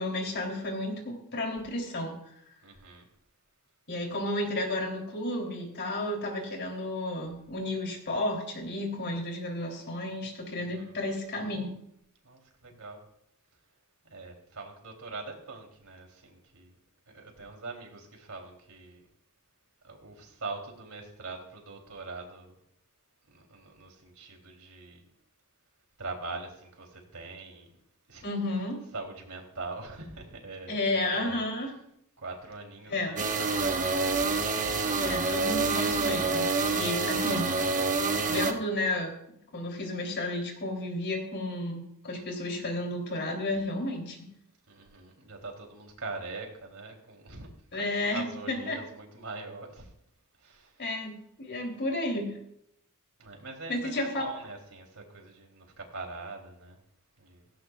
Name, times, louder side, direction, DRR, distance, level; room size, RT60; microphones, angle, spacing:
voice 1, 0.0-2.2 3.9-11.8 28.2-28.8 30.7-31.7 32.9-33.2 35.0-37.6 38.3-39.2 39.5-44.3 47.7-48.8 50.8-52.4 53.7-54.2, left 1 dB, 50° left, 2 dB, 3.5 m, -32 dB
voice 2, 2.6-3.1 10.6-10.9 12.2-13.0 14.0-16.8 17.1-19.1 19.8-22.6 23.3-25.1 26.0-27.7 28.1-28.2 28.9-31.4 32.2-33.9 44.7-49.9 50.4-50.8 53.2-56.8 57.2-57.5, right 3 dB, 70° right, 2 dB, 3.5 m, -43 dB
sound 1, 33.2-38.5, right 3 dB, 35° right, 1.2 m, -27 dB
17.0 x 15.5 x 2.5 m, 0.74 s
head